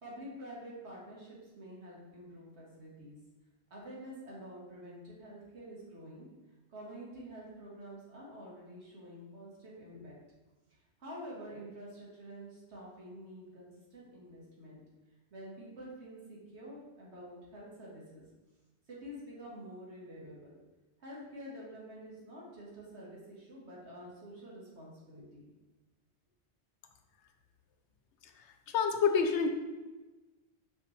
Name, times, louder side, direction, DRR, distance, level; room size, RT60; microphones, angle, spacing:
voice 1, 0.0-3.2 3.7-6.3 6.7-10.2 11.0-14.8 15.3-18.3 18.9-20.6 21.0-25.5, equal, 75° right, -5 dB, 1.9 m, -48 dB
voice 2, 28.7-29.5, left 6 dB, 80° left, 6 dB, 0.9 m, -27 dB
5.8 x 5.2 x 3.2 m, 1.1 s
omnidirectional pair, 1.2 m